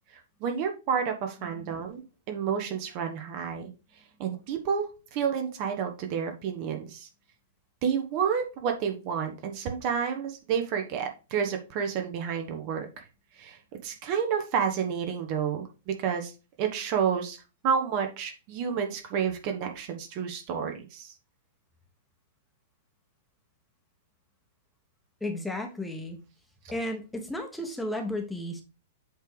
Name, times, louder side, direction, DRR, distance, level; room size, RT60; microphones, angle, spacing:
voice 1, 0.4-3.7 4.2-7.1 7.8-12.9 13.4-16.3 16.6-17.4 17.6-21.1, right 7 dB, 40° right, 5 dB, 1.2 m, -30 dB
voice 2, 1.5-1.8 25.2-26.2 26.7-28.6, left 1 dB, 5° left, 2 dB, 1.2 m, -34 dB
7.9 x 3.5 x 4.8 m, 0.31 s
figure-of-eight pair, 105°, 0 cm